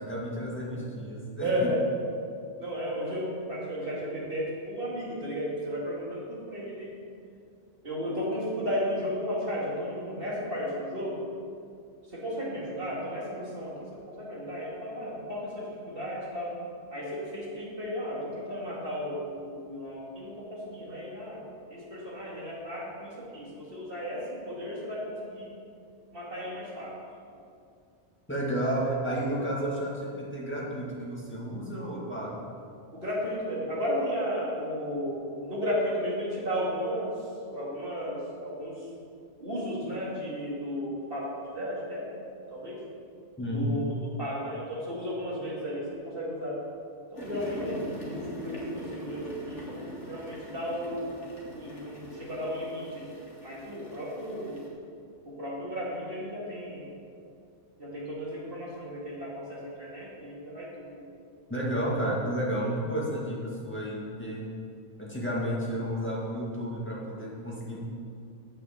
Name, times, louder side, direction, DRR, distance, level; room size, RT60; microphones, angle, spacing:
voice 1, 0.0-1.7 28.3-32.4 43.4-43.7 61.5-64.5 65.0-67.8, right 1 dB, 10° left, -5 dB, 2.0 m, -32 dB
voice 2, 1.4-1.8 2.6-6.9 7.8-11.2 12.1-16.6 16.9-21.4 21.7-25.5 26.1-27.0 32.9-38.9 39.4-42.1 42.5-42.8 43.5-43.8 44.2-46.6 47.1-51.1 51.5-53.1 53.4-54.6 55.3-56.9 57.8-61.0, equal, 50° right, -5 dB, 2.5 m, -34 dB
sound 1, 47.2-54.7, equal, 80° left, 2.1 m, -42 dB
8.0 x 6.1 x 7.4 m, 2.4 s
omnidirectional pair, 1.2 m